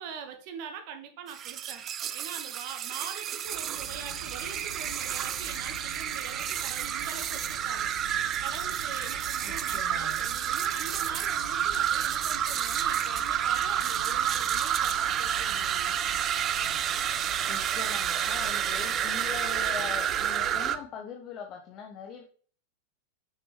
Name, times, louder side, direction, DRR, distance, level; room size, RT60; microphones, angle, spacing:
voice 1, 0.0-1.9 2.1-7.9 8.4-15.9, right 7 dB, 45° right, 6 dB, 1.5 m, -43 dB
sound 1, 1.3-20.8, right 9 dB, 30° right, 0.5 m, -30 dB
sound 2, 3.4-20.8, right 2 dB, 75° right, 2.8 m, -44 dB
voice 2, 9.4-10.2 17.5-22.2, left 7 dB, 35° left, 2 dB, 1.0 m, -41 dB
6.7 x 6.2 x 3.2 m, 0.43 s
figure-of-eight pair, 90°, 0 cm